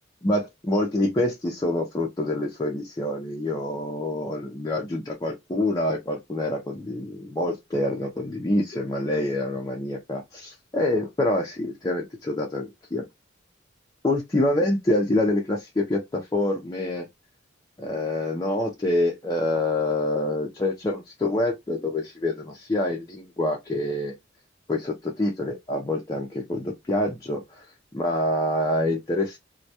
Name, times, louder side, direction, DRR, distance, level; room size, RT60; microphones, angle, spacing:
voice 1, 0.2-13.0 14.0-17.1 17.8-24.1 24.7-27.7 27.9-29.4, left 1 dB, 20° left, 0.5 m, -26 dB
2.2 x 2.1 x 2.7 m
head